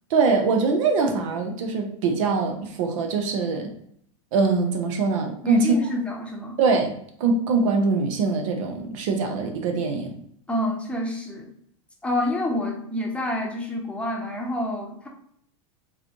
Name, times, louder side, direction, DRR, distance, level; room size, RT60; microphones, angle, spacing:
voice 1, 0.1-3.7 4.3-5.7 6.6-6.9 7.2-10.2, right 4 dB, 65° right, 4 dB, 0.8 m, -23 dB
voice 2, 5.4-6.6 10.5-11.5 12.0-15.1, left 1 dB, 5° left, 0 dB, 0.8 m, -28 dB
4.0 x 3.0 x 2.8 m, 0.67 s
hypercardioid pair, 100°, 18 cm